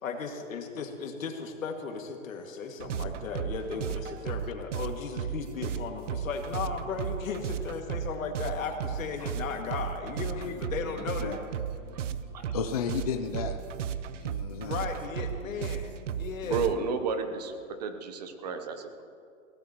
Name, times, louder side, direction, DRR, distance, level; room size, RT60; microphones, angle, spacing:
voice 1, 0.0-11.4 14.6-16.7, left 5 dB, 85° left, 3 dB, 2.2 m, -36 dB
sound 1, 2.8-16.7, right 8 dB, 65° right, 0.8 m, -35 dB
voice 2, 12.5-13.6 14.2-14.8, left 6 dB, 30° left, 5 dB, 0.5 m, -33 dB
voice 3, 16.4-19.0, right 5 dB, 30° right, 7 dB, 0.9 m, -32 dB
23.0 x 17.0 x 3.0 m, 2.3 s
hypercardioid pair, 175°, 39 cm